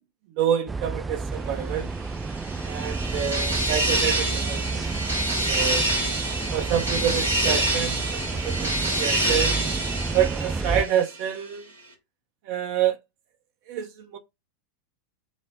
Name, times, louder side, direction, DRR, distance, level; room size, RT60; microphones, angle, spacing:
voice 1, 0.4-1.9 2.6-5.0 5.5-5.8 6.5-8.7 9.0-9.5 10.1-11.7 12.5-13.0 13.7-14.2, right 10 dB, 45° right, 0.7 m, -27 dB
sound 1, 0.7-10.8, right 4 dB, 15° right, 0.3 m, -30 dB
sound 2, 2.1-11.2, right 1 dB, 75° right, 1.3 m, -27 dB
4.9 x 2.1 x 4.0 m
figure-of-eight pair, 90°, 0 cm